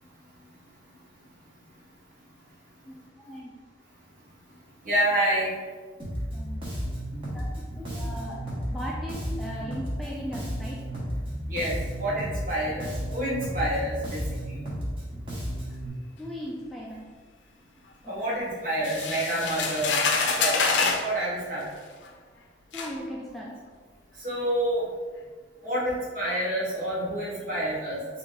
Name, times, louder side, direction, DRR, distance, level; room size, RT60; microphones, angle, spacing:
voice 1, 4.8-5.6 11.5-14.2 18.1-20.0 20.4-21.6 24.2-24.8 25.6-28.2, right 1 dB, 45° right, -7 dB, 1.3 m, -28 dB
Bass guitar, 6.0-15.9, equal, 30° right, 0.9 m, -33 dB
voice 2, 7.8-8.4 8.7-10.9 16.2-17.1 18.0-18.5 22.7-23.6, equal, ahead, -5 dB, 0.3 m, -38 dB
sound 1, 18.8-21.1 22.0-22.1 22.7-22.9, left 4 dB, 75° left, 0.5 m, -26 dB
3.7 x 2.6 x 3.8 m, 1.5 s
head